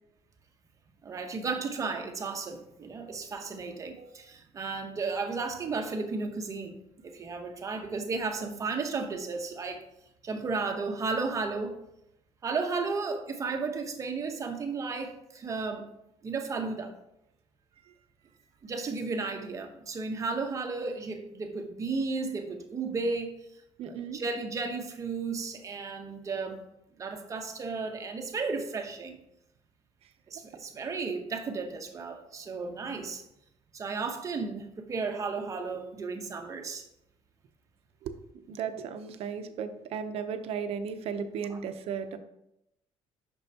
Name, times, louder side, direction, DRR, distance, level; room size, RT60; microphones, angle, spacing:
voice 1, 1.0-6.8 7.0-9.8 10.2-11.8 12.4-15.9 16.2-16.9 18.6-23.3 23.9-26.6 27.0-29.2 30.3-33.2 33.7-36.9 41.5-41.6, right 4 dB, 30° right, 5 dB, 0.9 m, -34 dB
voice 2, 4.0-4.3 17.8-17.9 23.8-24.2 30.0-30.1 38.0-38.1 38.5-42.2, right 7 dB, 60° right, 9 dB, 0.7 m, -35 dB
8.7 x 6.2 x 2.8 m, 0.82 s
cardioid pair, 155°, 11 cm